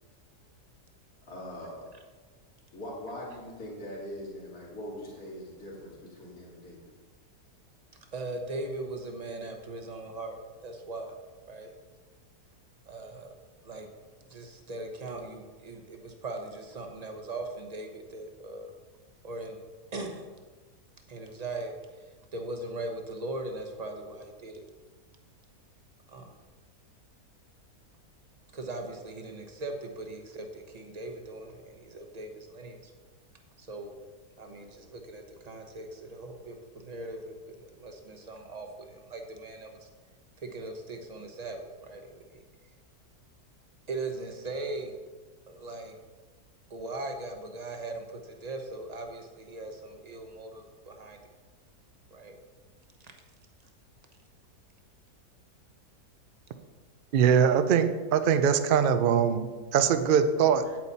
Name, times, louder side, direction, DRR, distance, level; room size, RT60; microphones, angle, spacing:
voice 1, 1.3-1.9 2.7-6.9, left 1 dB, 65° left, -5 dB, 2.9 m, -42 dB
voice 2, 8.1-11.2 11.5-11.7 12.9-13.3 13.6-13.9 14.3-18.7 19.2-19.6 19.9-20.3 21.1-24.6 26.1-26.3 28.5-32.9 33.6-33.9 34.4-39.9 40.4-42.4 43.9-45.0 45.5-46.0 46.7-51.2 52.1-52.4 53.0-53.1 60.7-60.8, right 2 dB, 30° right, 4 dB, 0.9 m, -39 dB
voice 3, 57.1-60.7, right 7 dB, 80° right, 10 dB, 0.4 m, -23 dB
8.9 x 8.9 x 4.2 m, 1.3 s
omnidirectional pair, 1.7 m